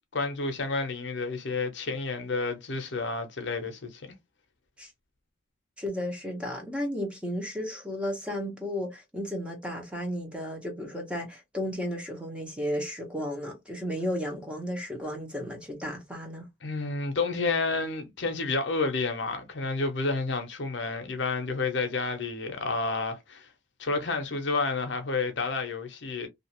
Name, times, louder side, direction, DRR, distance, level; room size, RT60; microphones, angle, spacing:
voice 1, 0.1-4.0 16.6-23.5 23.8-26.3, left 3 dB, 65° left, 0.7 m, -30 dB
voice 2, 5.8-16.4, equal, 5° right, 0.8 m, -33 dB
2.6 x 2.4 x 2.9 m
head